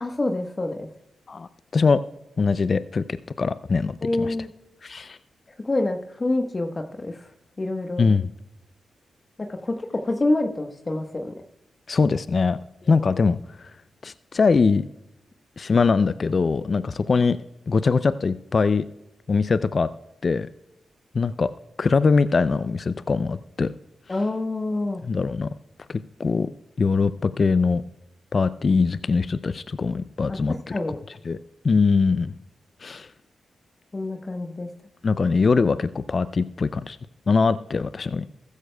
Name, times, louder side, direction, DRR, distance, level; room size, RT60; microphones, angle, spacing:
voice 1, 0.0-0.9 4.0-4.5 5.6-7.3 7.6-8.0 9.4-11.3 12.8-13.1 24.1-25.0 30.3-31.0 33.9-34.7, left 2 dB, 40° left, 5 dB, 1.2 m, -27 dB
voice 2, 1.3-2.0 2.4-3.0 3.4-4.4 4.8-5.2 8.0-8.3 11.9-12.6 12.9-13.7 14.0-14.9 15.6-17.4 17.7-18.8 19.3-19.9 20.2-20.5 21.1-21.5 21.8-23.7 25.0-25.5 25.9-26.5 26.8-27.8 28.3-30.6 31.3-31.4 31.6-32.3 32.8-33.1 35.0-37.0 37.3-38.2, left 4 dB, 55° left, 14 dB, 0.4 m, -22 dB
15.0 x 13.0 x 2.3 m, 0.90 s
supercardioid pair, 40°, 0 cm